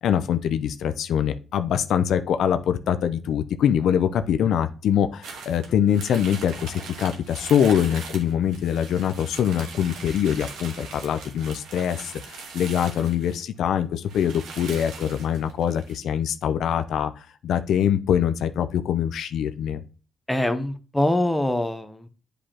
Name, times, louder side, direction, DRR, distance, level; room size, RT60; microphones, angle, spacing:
voice 1, 0.0-17.1 17.4-19.8, left 9 dB, 75° left, 10 dB, 0.5 m, -24 dB
sound 1, 5.2-13.4 13.8-13.9 14.0-16.0, right 5 dB, 85° right, 1.4 m, -40 dB
voice 2, 20.3-22.1, left 1 dB, 5° left, 9 dB, 0.8 m, -24 dB
8.2 x 5.0 x 2.9 m, 0.36 s
cardioid pair, 90°, 0 cm